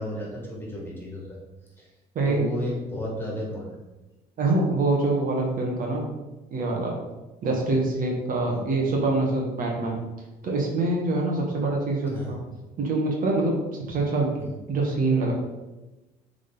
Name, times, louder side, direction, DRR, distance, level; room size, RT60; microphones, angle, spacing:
voice 1, 0.0-1.4 1.8-1.9 2.2-3.8 8.4-8.6 12.1-12.4 14.4-14.5, left 1 dB, 15° left, -4 dB, 2.2 m, -33 dB
voice 2, 2.1-2.5 4.4-6.0 6.5-7.0 7.4-10.0 10.4-12.4 12.8-14.3 14.7-15.3, right 2 dB, 55° right, -1 dB, 1.5 m, -25 dB
7.4 x 3.9 x 3.9 m, 1.1 s
cardioid pair, 110°, 17 cm